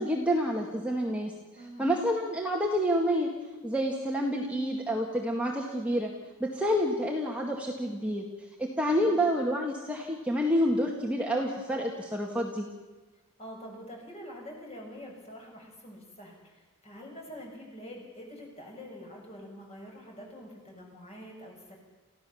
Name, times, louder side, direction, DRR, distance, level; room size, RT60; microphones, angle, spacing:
voice 1, 0.0-1.3 1.8-3.3 3.6-6.1 6.4-8.3 8.6-12.7, equal, 5° right, -1 dB, 1.9 m, -28 dB
voice 2, 1.5-2.0 9.0-9.3 13.4-21.8, equal, 30° left, 0 dB, 6.8 m, -46 dB
29.5 x 15.5 x 7.2 m, 1.2 s
head